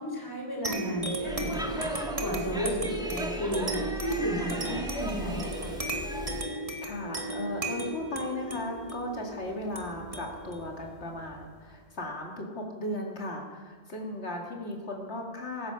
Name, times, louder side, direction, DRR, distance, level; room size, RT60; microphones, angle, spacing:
voice 1, 0.0-5.7, right 1 dB, 20° left, 0 dB, 3.6 m, -33 dB
sound 1, 0.6-11.7, right 1 dB, 30° right, 1.6 m, -36 dB
Speech / Shout / Subway metro underground, 1.2-6.5, equal, 5° right, 1.7 m, -36 dB
voice 2, 6.8-15.7, left 1 dB, 70° left, 0 dB, 2.5 m, -36 dB
15.0 x 14.5 x 5.7 m, 1.4 s
omnidirectional pair, 1.2 m